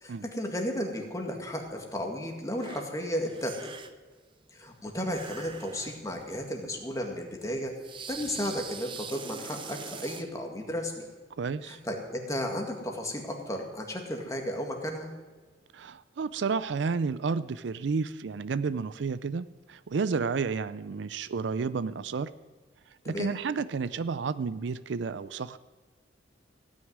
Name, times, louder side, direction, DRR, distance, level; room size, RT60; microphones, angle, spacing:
voice 1, 0.0-3.7 4.5-7.7 8.1-11.1 11.6-15.1 23.0-23.3, equal, 20° left, 2 dB, 1.8 m, -34 dB
sound 1, 1.6-1.7 2.6-2.9 3.2-4.1 5.1-6.3 6.7-6.8 7.8-10.3, right 5 dB, 25° right, 0.6 m, -43 dB
voice 2, 11.4-11.8 15.7-22.3 23.1-25.6, right 5 dB, 75° right, 15 dB, 0.4 m, -31 dB
16.0 x 6.3 x 9.4 m, 1.4 s
head